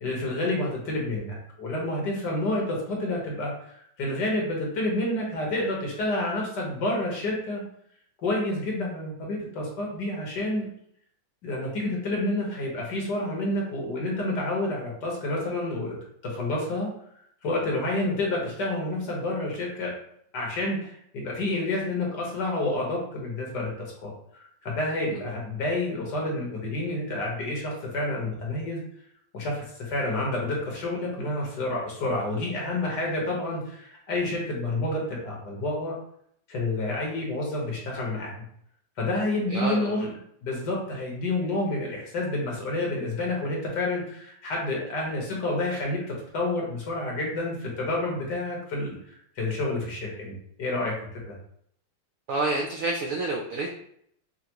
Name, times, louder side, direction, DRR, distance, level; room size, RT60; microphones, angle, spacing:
voice 1, 0.0-7.6 8.2-10.7 11.4-16.0 16.2-16.9 17.4-19.9 20.3-23.7 24.0-28.8 29.3-36.0 36.5-38.3 39.0-40.1 40.4-49.0 49.4-50.9 51.3-51.4, left 2 dB, 65° left, -2 dB, 1.8 m, -29 dB
voice 2, 39.5-39.9 52.3-53.7, right 2 dB, 80° right, 1 dB, 0.7 m, -28 dB
5.6 x 2.3 x 3.0 m, 0.69 s
omnidirectional pair, 2.0 m